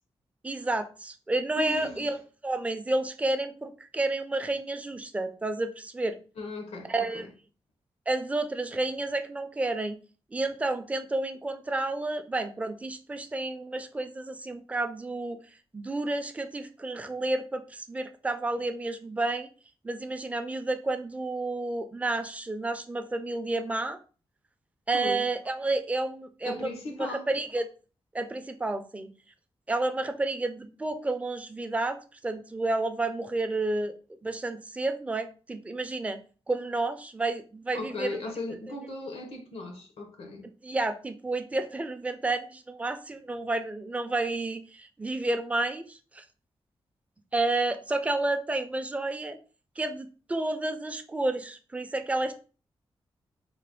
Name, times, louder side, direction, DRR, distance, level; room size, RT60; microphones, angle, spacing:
voice 1, 0.4-6.2 6.9-7.2 8.1-10.0 10.3-15.4 15.7-19.5 19.8-24.0 24.9-26.7 27.0-27.7 28.1-29.1 29.7-32.0 32.2-36.2 36.5-38.2 40.6-46.2 47.3-49.4 49.8-52.3, right 2 dB, 15° right, 0.4 m, -30 dB
voice 2, 1.5-2.2 6.4-7.3 24.9-25.3 26.4-27.3 37.7-40.5, left 2 dB, 90° left, 0.7 m, -37 dB
3.2 x 2.1 x 3.6 m
cardioid pair, 80°, 10 cm